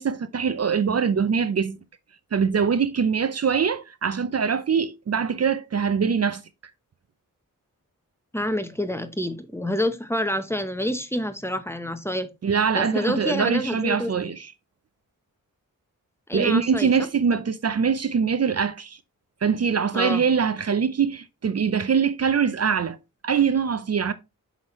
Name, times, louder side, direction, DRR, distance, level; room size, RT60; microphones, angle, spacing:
voice 1, 0.0-1.8 2.3-6.4 12.4-14.5 16.3-19.0 19.4-23.0 23.2-24.1, right 6 dB, 50° right, 0.5 m, -23 dB
voice 2, 8.3-12.3 12.7-14.3 16.3-16.9 19.9-20.2, left 1 dB, 10° left, 0.8 m, -27 dB
6.3 x 5.7 x 3.0 m
wide cardioid pair, 70°, 33 cm